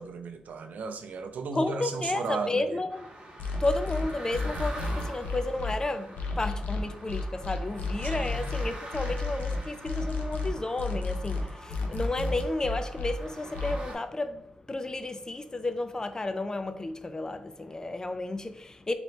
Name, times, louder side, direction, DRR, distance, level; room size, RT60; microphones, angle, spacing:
voice 1, 0.0-2.8 8.0-8.5, right 4 dB, 70° right, 0.4 m, -35 dB
voice 2, 1.5-3.1 3.6-18.9, left 2 dB, 25° left, 0.3 m, -32 dB
sound 1, 2.9-13.9, right 1 dB, 35° right, 1.3 m, -45 dB
sound 2, 3.4-5.7 6.2-13.1 13.5-13.7, left 4 dB, 90° left, 0.6 m, -32 dB
3.2 x 2.9 x 4.1 m
cardioid pair, 90°, 3 cm